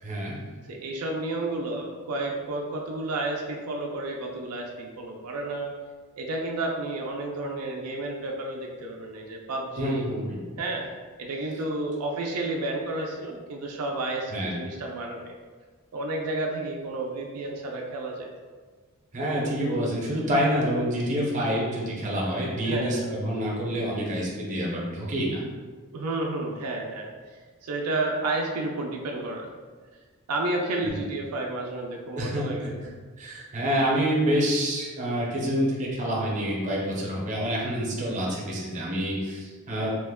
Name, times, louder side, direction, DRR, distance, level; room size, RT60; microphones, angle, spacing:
voice 1, 0.0-0.4 9.8-10.4 14.3-14.5 19.1-25.4 30.8-30.9 32.2-32.7 33.2-39.9, equal, 35° right, -4 dB, 0.6 m, -27 dB
voice 2, 0.7-5.7 6.2-10.0 10.6-10.9 11.2-15.3 15.9-18.3 19.3-19.5 22.6-23.1 25.9-27.1 27.6-29.5 30.3-32.7 39.8-39.9, right 2 dB, 80° right, 0 dB, 0.4 m, -31 dB
3.0 x 2.1 x 3.4 m, 1.5 s
head